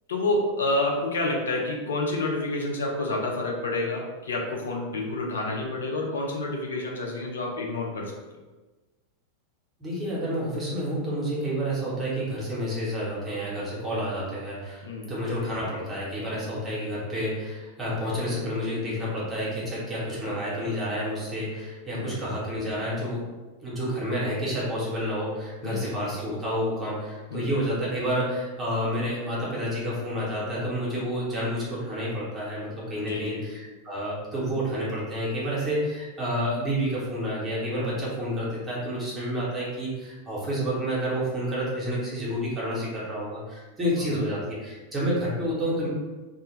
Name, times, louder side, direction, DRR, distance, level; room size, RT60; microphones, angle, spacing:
voice 1, 0.1-8.2 14.8-15.1 21.9-22.2 25.6-25.9 27.3-27.5 33.0-33.5 44.0-44.2, left 2 dB, 65° left, 0 dB, 0.4 m, -29 dB
voice 2, 9.8-23.3 23.6-45.9, equal, 20° right, -6 dB, 0.8 m, -29 dB
2.1 x 2.1 x 3.1 m, 1.2 s
figure-of-eight pair, 90°, 0 cm